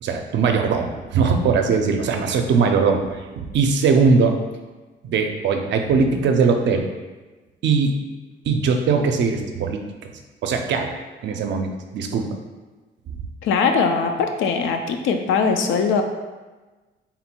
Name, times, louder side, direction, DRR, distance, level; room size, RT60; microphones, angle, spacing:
voice 1, 0.0-4.4 5.0-6.9 7.6-8.0 8.5-10.1 10.4-10.9 11.2-12.4, right 5 dB, 65° right, 4 dB, 0.5 m, -20 dB
voice 2, 13.4-16.0, left 5 dB, 80° left, 5 dB, 0.5 m, -21 dB
3.7 x 2.1 x 4.4 m, 1.2 s
cardioid pair, 90°, 20 cm